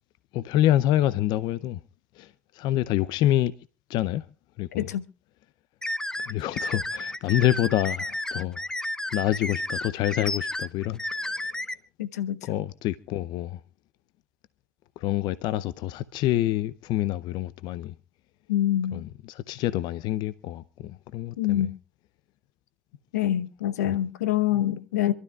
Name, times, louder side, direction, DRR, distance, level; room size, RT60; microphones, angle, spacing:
voice 1, 0.3-1.8 2.2-3.5 3.9-4.3 4.6-4.9 6.2-8.6 9.1-11.3 12.4-13.6 15.0-17.9 18.9-21.7 23.9-24.0 24.5-24.6, left 13 dB, 60° left, 0.6 m, -27 dB
sound 1, 5.8-11.7, left 1 dB, 10° left, 0.8 m, -32 dB
voice 2, 12.0-12.4 18.5-19.0 21.4-21.8 23.1-25.1, left 12 dB, 85° left, 0.8 m, -25 dB
27.0 x 12.5 x 2.4 m
hypercardioid pair, 75°, 9 cm